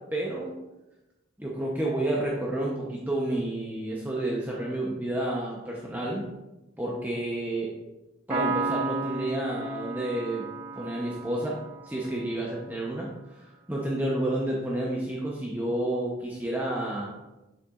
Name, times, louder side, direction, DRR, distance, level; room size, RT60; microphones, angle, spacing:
voice 1, 0.1-0.5 1.4-6.2 6.8-7.7 8.3-10.5 10.7-11.6 11.8-17.1, right 1 dB, 10° right, -4 dB, 0.8 m, -30 dB
Piano, 8.3-11.9, right 3 dB, 50° right, 1.8 m, -33 dB
7.5 x 6.8 x 2.5 m, 0.99 s
head